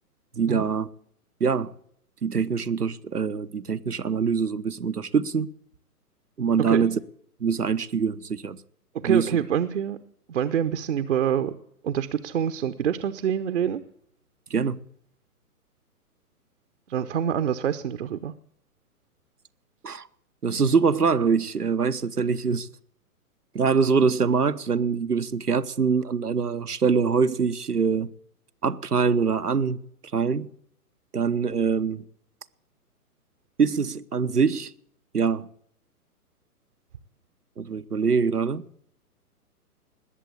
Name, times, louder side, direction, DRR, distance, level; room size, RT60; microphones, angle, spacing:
voice 1, 0.3-0.9 1.4-1.7 2.2-5.5 6.4-7.0 7.4-8.6 9.0-9.3 14.5-14.8 19.8-20.1 20.4-22.7 23.5-28.1 28.6-29.8 30.1-30.5 31.1-32.1 33.6-34.7 35.1-35.5 37.6-38.6, right 5 dB, 80° right, 0.9 m, -24 dB
voice 2, 8.9-10.0 10.3-11.5 11.8-13.8 16.9-18.3, right 9 dB, 50° right, 0.8 m, -26 dB
20.0 x 7.5 x 8.5 m
figure-of-eight pair, 125°, 46 cm